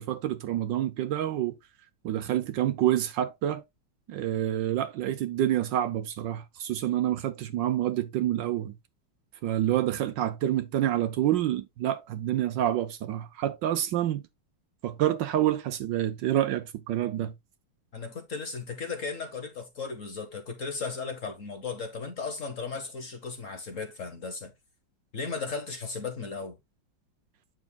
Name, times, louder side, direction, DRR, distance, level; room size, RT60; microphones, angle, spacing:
voice 1, 0.0-1.6 2.0-3.6 4.1-8.7 9.4-14.2 14.8-17.3, right 12 dB, 70° right, 1.2 m, -28 dB
voice 2, 17.9-24.5 25.1-26.6, left 4 dB, 45° left, 1.2 m, -36 dB
9.0 x 6.3 x 2.3 m
omnidirectional pair, 2.3 m